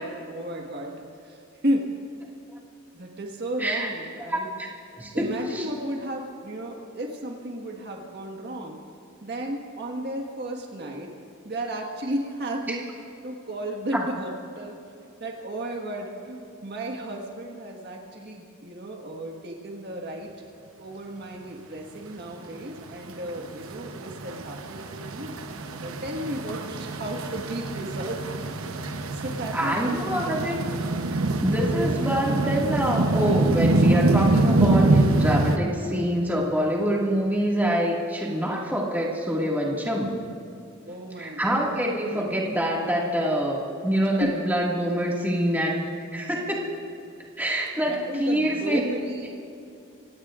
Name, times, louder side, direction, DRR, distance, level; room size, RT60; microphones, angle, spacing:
voice 1, 0.0-1.9 2.9-4.5 5.1-8.8 9.2-11.1 11.4-12.9 13.2-14.7 15.2-20.3 20.8-25.4 25.8-28.3 28.8-30.4 40.8-41.6 42.1-42.2 44.0-44.3 47.9-49.4, right 1 dB, 50° right, 0 dB, 1.6 m, -33 dB
voice 2, 3.6-3.9 4.2-4.7 5.0-5.3 5.5-5.6 13.9-14.0 29.5-30.6 31.4-40.2 41.2-46.7 47.4-48.8, equal, 10° right, -3 dB, 2.0 m, -26 dB
sound 1, 22.8-35.6, right 2 dB, 80° right, 0.9 m, -24 dB
26.5 x 17.0 x 2.5 m, 2.6 s
head